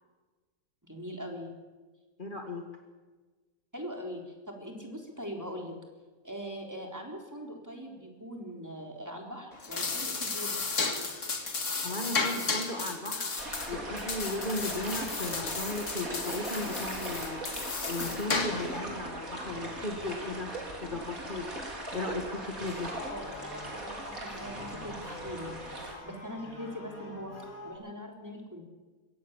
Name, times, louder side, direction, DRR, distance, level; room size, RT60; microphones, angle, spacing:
voice 1, 0.8-1.5 3.7-5.8 6.2-10.6 12.1-12.3 23.1-27.3 27.6-28.6, equal, 10° right, 1 dB, 3.8 m, -41 dB
voice 2, 2.2-2.6 11.8-13.3 13.7-20.5 20.8-21.5 21.9-22.9, left 2 dB, 35° left, 3 dB, 2.1 m, -36 dB
sound 1, 9.5-18.8, left 4 dB, 60° left, 2.4 m, -34 dB
sound 2, 13.4-25.9, right 1 dB, 85° right, 4.7 m, -39 dB
sound 3, 22.4-27.7, left 2 dB, 85° left, 5.2 m, -46 dB
23.5 x 17.5 x 7.3 m, 1.3 s
omnidirectional pair, 1.5 m